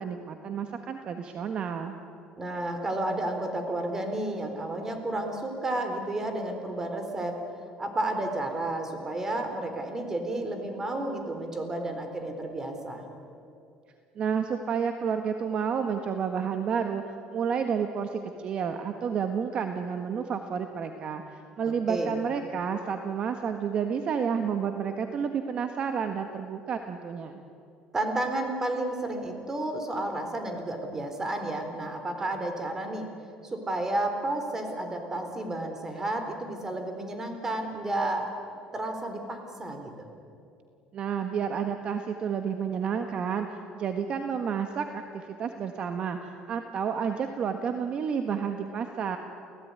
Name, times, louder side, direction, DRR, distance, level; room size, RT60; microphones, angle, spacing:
voice 1, 0.0-1.9 14.1-27.4 40.9-49.2, right 7 dB, 45° right, 6 dB, 1.4 m, -30 dB
voice 2, 2.4-7.4 7.8-13.0 21.6-22.2 27.9-33.1 33.4-38.4 38.7-40.1, right 1 dB, 20° right, 5 dB, 3.9 m, -31 dB
29.0 x 17.0 x 9.6 m, 2.6 s
cardioid pair, 130°, 2 cm